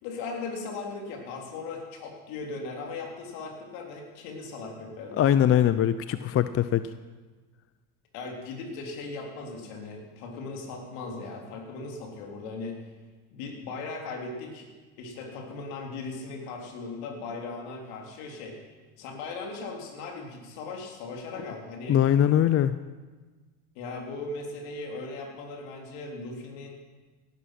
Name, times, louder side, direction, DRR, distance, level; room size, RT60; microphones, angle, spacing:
voice 1, 0.0-5.3 8.1-12.8 13.3-14.7 15.0-18.6 19.0-22.0 23.8-26.7, left 3 dB, 65° left, 1 dB, 3.7 m, -38 dB
voice 2, 5.2-6.9 21.9-22.8, left 10 dB, 35° left, 13 dB, 0.6 m, -22 dB
17.5 x 11.5 x 6.0 m, 1.3 s
hypercardioid pair, 75°, 42 cm